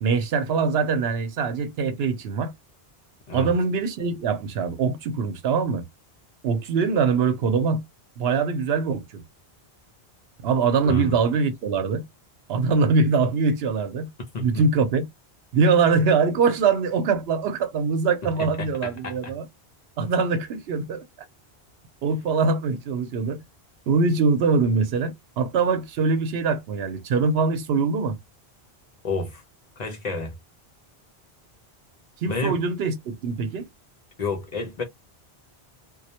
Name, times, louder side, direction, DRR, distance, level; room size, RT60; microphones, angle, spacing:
voice 1, 0.0-2.5 3.3-5.8 6.4-7.8 8.2-9.2 10.4-12.0 12.5-14.1 14.4-15.0 15.5-19.5 20.0-21.0 22.0-23.4 23.9-28.2 32.2-33.7, right 5 dB, 80° right, 0.8 m, -23 dB
voice 2, 10.8-11.1 14.3-14.6 18.4-19.3 29.0-29.4 29.8-30.4 32.2-32.6 34.2-34.8, left 2 dB, 50° left, 0.6 m, -30 dB
2.2 x 2.0 x 2.7 m
omnidirectional pair, 1.1 m